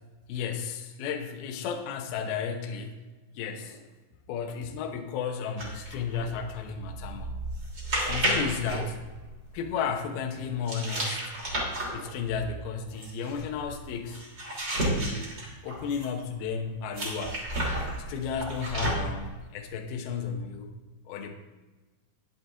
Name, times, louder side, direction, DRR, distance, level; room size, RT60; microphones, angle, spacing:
voice 1, 0.3-3.0 3.4-3.9 4.3-7.4 8.1-9.0 9.5-11.2 11.9-14.2 14.9-15.3 15.6-17.5 18.1-20.7 21.1-21.3, left 6 dB, 80° left, 4 dB, 2.2 m, -33 dB
sound 1, 5.6-9.7 10.7-16.2 16.9-19.3, right 1 dB, 30° right, 2.6 m, -32 dB
11.0 x 10.5 x 3.5 m, 1.2 s
omnidirectional pair, 5.9 m